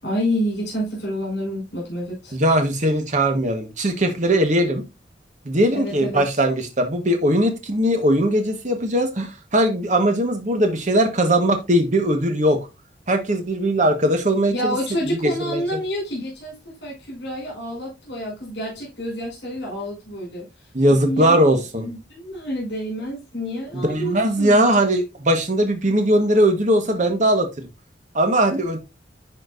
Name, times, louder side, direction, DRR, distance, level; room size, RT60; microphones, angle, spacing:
voice 1, 0.0-2.3 5.7-6.4 14.5-16.5 16.8-21.4 21.8-24.7, equal, 65° left, 4.8 m, -28 dB
voice 2, 2.3-4.8 5.4-12.6 13.1-14.8 15.0-15.6 20.7-21.9 23.7-27.5 28.1-28.8, right 1 dB, 40° right, 1.3 m, -20 dB
11.0 x 4.4 x 2.5 m
head